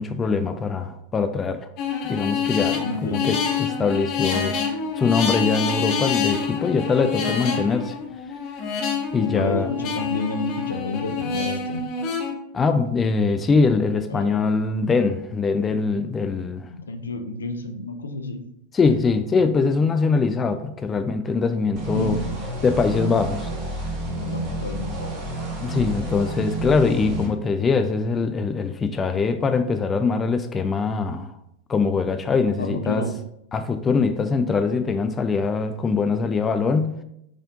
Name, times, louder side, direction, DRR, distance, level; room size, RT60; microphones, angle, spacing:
voice 1, 0.0-1.7 2.0-4.6 5.0-8.0 9.1-9.7 12.5-16.7 18.7-22.2 22.6-23.5 25.6-31.3 31.7-33.1 33.5-37.0, left 4 dB, 20° left, 0.4 m, -22 dB
sound 1, 1.8-12.3, left 6 dB, 40° left, 0.9 m, -27 dB
voice 2, 2.8-3.3 9.2-11.8 14.1-14.3 16.7-18.5 21.9-22.5 24.2-25.3 32.6-33.1, left 3 dB, 70° left, 0.7 m, -30 dB
sound 2, 21.8-27.3, right 2 dB, 40° right, 2.1 m, -30 dB
6.1 x 4.2 x 3.9 m
figure-of-eight pair, 90°, 0 cm